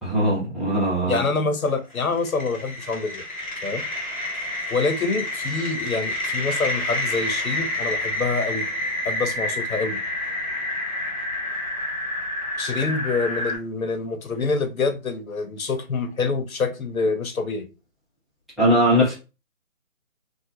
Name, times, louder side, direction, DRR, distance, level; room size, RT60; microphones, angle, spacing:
voice 1, 0.0-1.2 18.6-19.2, equal, ahead, 0.7 m, -20 dB
voice 2, 1.1-3.2 3.6-3.9 4.7-8.7 9.0-10.0 12.6-17.7 19.0-19.2, left 4 dB, 85° left, 0.9 m, -26 dB
sound 1, 1.6-13.6, left 1 dB, 25° left, 1.2 m, -29 dB
3.6 x 2.2 x 3.2 m
hypercardioid pair, 180°, 41 cm